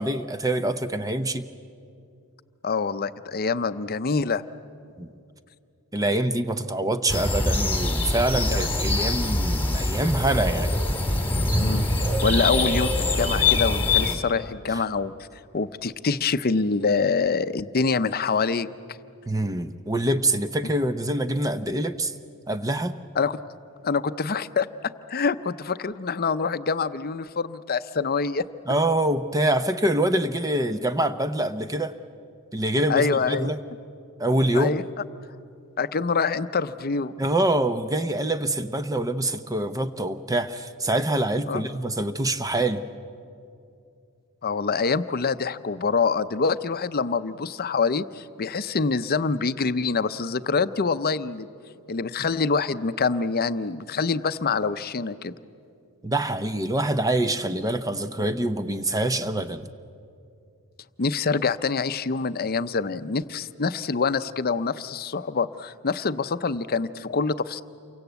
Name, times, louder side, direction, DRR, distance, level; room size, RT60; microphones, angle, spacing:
voice 1, 0.0-1.4 5.0-5.1 5.9-10.7 14.7-14.8 19.3-22.1 22.5-23.0 28.7-31.9 32.5-33.6 34.2-34.7 37.2-42.8 56.0-59.7, right 1 dB, 15° right, 10 dB, 0.7 m, -25 dB
voice 2, 2.6-4.4 8.4-9.0 11.6-11.8 12.2-15.1 15.5-18.7 23.2-23.4 23.8-28.4 32.9-33.5 34.5-34.8 35.8-37.1 41.5-41.6 44.4-51.5 51.9-55.3 61.0-67.6, left 4 dB, 45° left, 13 dB, 0.7 m, -25 dB
sound 1, 7.1-14.2, left 2 dB, 10° left, 2.0 m, -23 dB
28.5 x 24.0 x 8.2 m, 2.5 s
head